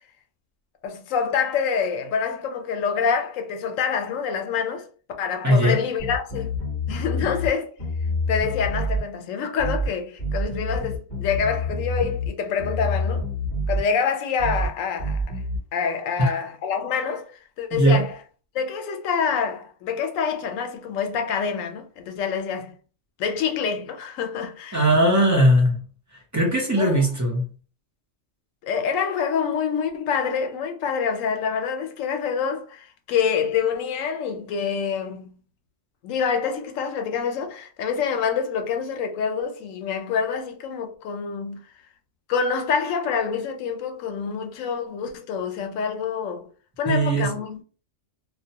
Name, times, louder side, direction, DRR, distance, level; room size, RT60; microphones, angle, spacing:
voice 1, 0.8-4.9 5.2-6.6 6.9-7.7 8.3-13.2 13.7-15.4 15.7-17.3 17.6-18.2 18.5-22.7 23.2-24.8 26.8-27.0 28.6-35.4 36.0-41.6 42.3-46.5 46.8-47.6, left 6 dB, 85° left, 1.0 m, -26 dB
voice 2, 5.4-5.8 16.2-16.4 17.7-18.1 24.7-25.8 26.3-27.5 46.9-47.3, right 1 dB, 25° right, 0.4 m, -19 dB
sound 1, 6.0-7.5 7.8-9.0 9.6-9.9 10.2-12.3 12.6-13.8 14.4-14.7 15.0-15.6, left 1 dB, 30° left, 1.2 m, -27 dB
2.4 x 2.1 x 2.8 m
omnidirectional pair, 1.3 m